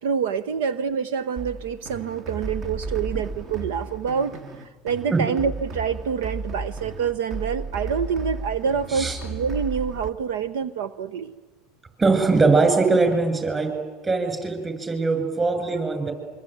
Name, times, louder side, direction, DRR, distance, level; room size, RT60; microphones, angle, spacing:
voice 1, 0.0-11.3, right 6 dB, 85° right, 15 dB, 0.9 m, -27 dB
sound 1, 1.4-10.1, right 3 dB, 45° right, 2.0 m, -34 dB
voice 2, 12.0-13.7 14.0-16.1, right 3 dB, 25° right, 7 dB, 8.0 m, -21 dB
26.0 x 24.5 x 9.4 m, 1.3 s
hypercardioid pair, 95°, 0 cm